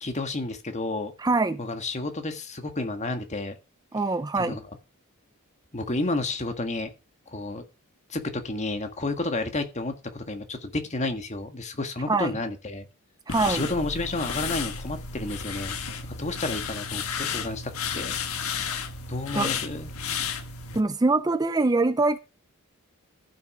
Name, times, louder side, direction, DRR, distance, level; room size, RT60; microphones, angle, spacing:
voice 1, 0.0-1.1 1.6-3.5 4.4-4.6 5.7-6.9 7.3-7.6 8.1-12.9 13.4-15.8 16.2-18.1 19.1-19.9, left 2 dB, 35° left, 1.7 m, -31 dB
voice 2, 1.2-1.6 3.9-4.6 12.1-12.3 13.3-13.7 19.3-19.5 20.7-22.2, right 3 dB, 20° right, 0.4 m, -23 dB
sound 1, 13.3-20.8, left 6 dB, 85° left, 1.5 m, -32 dB
14.0 x 6.3 x 4.9 m
head